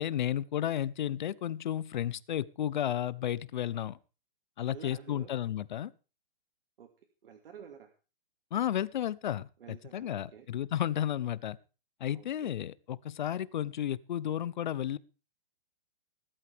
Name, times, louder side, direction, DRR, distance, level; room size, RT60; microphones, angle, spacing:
voice 1, 0.0-4.0 4.6-5.9 8.5-9.5 9.9-11.6 12.0-15.0, left 11 dB, 50° left, 20 dB, 0.7 m, -32 dB
voice 2, 4.7-5.3 6.8-6.9 7.2-7.9 9.6-10.5 12.1-12.5, right 8 dB, 65° right, 6 dB, 2.2 m, -50 dB
19.5 x 12.5 x 3.5 m, 0.33 s
hypercardioid pair, 170°, 30 cm